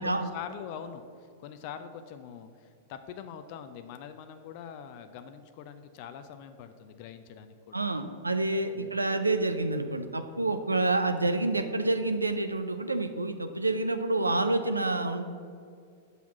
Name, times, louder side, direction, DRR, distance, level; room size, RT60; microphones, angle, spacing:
voice 1, 0.0-7.8 8.7-9.0, left 8 dB, 50° left, 9 dB, 0.4 m, -43 dB
voice 2, 7.7-15.2, right 2 dB, 90° right, 8 dB, 0.4 m, -28 dB
5.7 x 4.1 x 6.0 m, 2.3 s
figure-of-eight pair, 100°, 0 cm